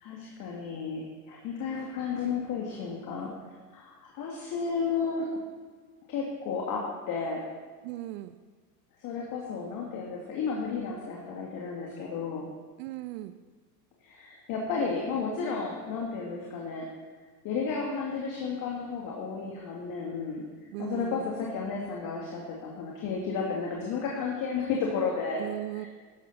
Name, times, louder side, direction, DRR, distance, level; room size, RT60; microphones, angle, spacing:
voice 1, 0.0-3.3 3.7-5.3 6.1-7.4 9.0-12.5 14.0-16.9 17.4-20.4 20.8-25.4 25.7-25.9, left 5 dB, 40° left, -2 dB, 2.3 m, -33 dB
voice 2, 7.8-8.4 12.8-13.3 20.7-21.3 25.4-25.9, right 16 dB, 40° right, 12 dB, 0.6 m, -37 dB
14.5 x 11.5 x 4.2 m, 1.5 s
figure-of-eight pair, 85°, 48 cm